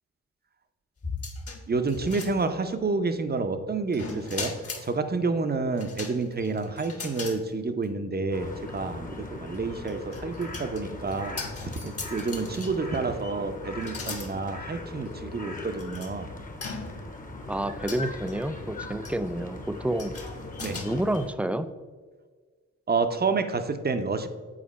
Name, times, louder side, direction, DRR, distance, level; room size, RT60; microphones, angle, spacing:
sound 1, 1.0-2.8 3.9-4.9 5.8-7.4 7.8-7.9 9.5-13.0 13.8-14.3 15.1-15.2 15.8-16.1 16.6-17.2 17.9-18.3 19.0-19.3 20.0-20.8, left 4 dB, 45° left, 1.4 m, -39 dB
voice 1, 1.7-4.5 4.8-11.4 11.8-16.3 20.6-20.8 22.9-24.3, right 4 dB, 30° right, 8 dB, 0.7 m, -29 dB
sound 2, 8.3-21.3, left 2 dB, 25° left, 1.0 m, -39 dB
voice 2, 17.5-20.1 20.8-21.7, right 1 dB, 5° right, 12 dB, 0.4 m, -29 dB
7.4 x 4.2 x 4.1 m, 1.5 s
cardioid pair, 55°, 34 cm